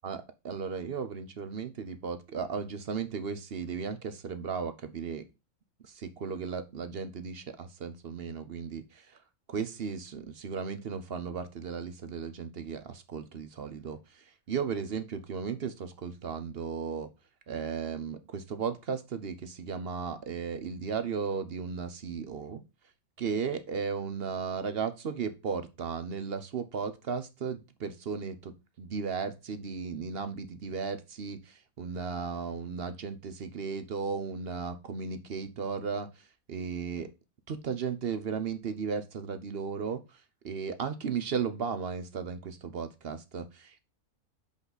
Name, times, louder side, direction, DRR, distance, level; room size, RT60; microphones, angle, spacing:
voice 1, 0.0-5.2 5.8-9.2 9.5-17.1 17.5-22.6 23.2-36.2 36.5-37.1 37.5-43.9, right 6 dB, 50° right, 11 dB, 0.8 m, -35 dB
6.4 x 5.3 x 4.0 m, 0.26 s
omnidirectional pair, 1.5 m